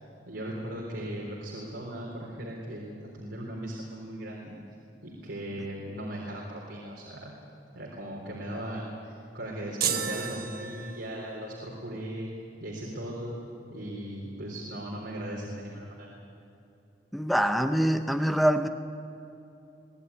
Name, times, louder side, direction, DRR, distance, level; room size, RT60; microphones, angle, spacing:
voice 1, 0.3-4.6 5.0-7.3 7.7-12.3 12.6-13.4 13.7-16.1, right 1 dB, 75° right, -3 dB, 3.7 m, -38 dB
sound 1, 9.8-11.4, right 7 dB, 55° right, 1.5 m, -32 dB
voice 2, 17.1-18.7, equal, ahead, 8 dB, 0.7 m, -24 dB
23.0 x 17.5 x 9.8 m, 2.8 s
head